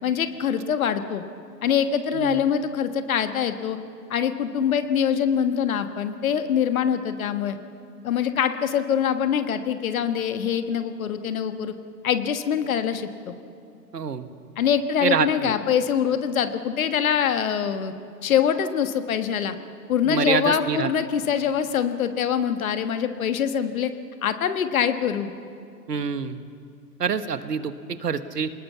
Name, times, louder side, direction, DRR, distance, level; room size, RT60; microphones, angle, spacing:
voice 1, 0.0-1.2 1.6-3.8 4.1-7.6 8.0-11.7 12.0-13.3 14.6-17.9 18.2-19.5 19.9-23.9 24.2-25.3, left 8 dB, 55° left, 9 dB, 1.6 m, -24 dB
voice 2, 2.1-2.5 13.9-14.3 15.0-15.5 20.0-20.9 25.9-26.4 27.0-28.5, right 6 dB, 70° right, 12 dB, 1.4 m, -26 dB
28.0 x 19.5 x 7.2 m, 2.4 s
figure-of-eight pair, 105°, 49 cm